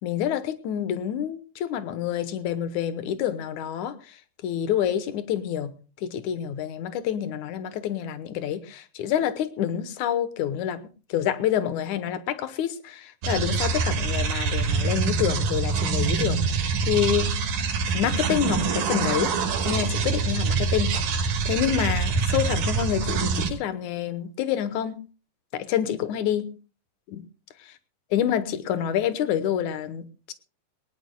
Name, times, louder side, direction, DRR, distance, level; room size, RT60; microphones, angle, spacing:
voice 1, 0.0-4.2 4.4-5.7 6.0-10.8 11.1-17.4 17.9-19.3 19.7-21.2 21.5-25.1 25.5-26.6 27.1-27.2 28.1-30.3, left 10 dB, 70° left, 13 dB, 2.2 m, -27 dB
sound 1, 13.2-23.5, right 5 dB, 65° right, 2.9 m, -25 dB
21.0 x 19.0 x 2.2 m, 0.34 s
omnidirectional pair, 4.0 m